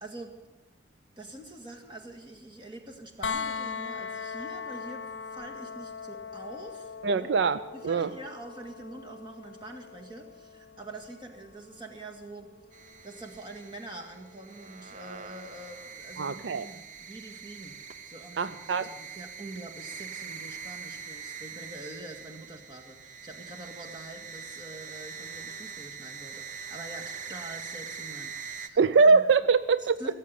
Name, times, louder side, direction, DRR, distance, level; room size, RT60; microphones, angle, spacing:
voice 1, 0.0-0.4 1.2-7.3 7.7-12.5 13.0-17.8 18.0-29.2 29.8-30.1, right 1 dB, 25° right, 2 dB, 1.9 m, -45 dB
sound 1, 3.2-15.0 17.0-17.1, left 5 dB, 70° left, 0.7 m, -41 dB
voice 2, 7.0-8.1 16.2-16.7 18.4-18.9 28.8-30.0, right 4 dB, 70° right, 14 dB, 0.4 m, -23 dB
sound 2, 12.7-28.7, right 6 dB, 45° right, 0.8 m, -43 dB
17.0 x 7.7 x 9.4 m, 1.1 s
head